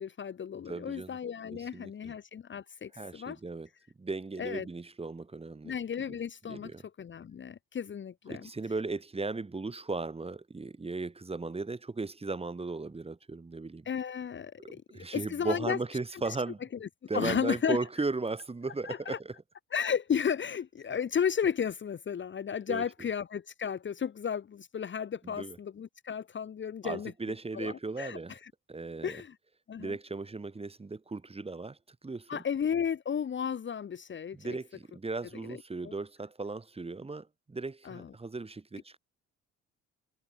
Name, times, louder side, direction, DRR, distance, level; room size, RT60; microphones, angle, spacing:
voice 1, 0.0-3.4 4.4-4.7 5.6-6.7 7.0-8.5 13.9-15.8 16.8-16.9 17.1-17.8 18.8-19.2 19.7-27.1 27.5-28.5 29.0-29.3 29.7-30.0 32.3-34.6 35.5-35.6 35.8-35.9 37.8-38.1, left 7 dB, 40° left, 0.9 m, -33 dB
voice 2, 0.7-1.2 1.5-2.1 2.9-3.7 4.0-5.8 6.4-6.8 8.3-13.9 14.6-16.6 17.1-19.3 22.7-22.8 25.2-25.6 26.8-28.4 28.7-29.2 29.8-31.8 32.0-32.4 34.3-39.0, right 3 dB, 20° right, 1.6 m, -36 dB
cardioid pair, 90°, 30 cm